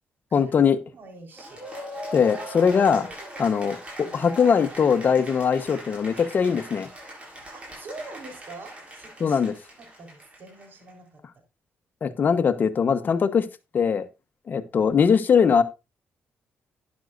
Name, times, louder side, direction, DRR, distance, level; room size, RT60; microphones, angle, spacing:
voice 1, 0.3-0.8 2.1-3.1 3.4-6.9 9.2-9.5 12.0-13.5 13.7-14.0 14.5-15.6, left 6 dB, 50° left, 1.2 m, -21 dB
voice 2, 0.9-1.6 4.0-4.3 7.5-9.4 9.8-11.2, right 2 dB, 55° right, 4.3 m, -44 dB
Cheering / Applause, 1.3-10.9, equal, 30° right, 7.1 m, -40 dB
12.0 x 10.5 x 2.6 m
cardioid pair, 105°, 4 cm